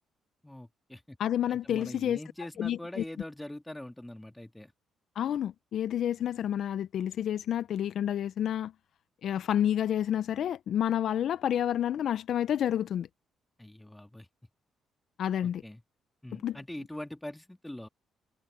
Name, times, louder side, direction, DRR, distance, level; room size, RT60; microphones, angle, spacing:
voice 1, 0.4-1.2 1.5-4.7 13.6-14.3 15.4-15.8 16.2-17.9, left 1 dB, 10° left, 2.2 m, -43 dB
voice 2, 1.2-2.2 2.6-3.0 5.2-8.7 9.2-13.1 15.2-15.6 16.3-16.6, left 10 dB, 65° left, 0.8 m, -29 dB
supercardioid pair, 60°, 0 cm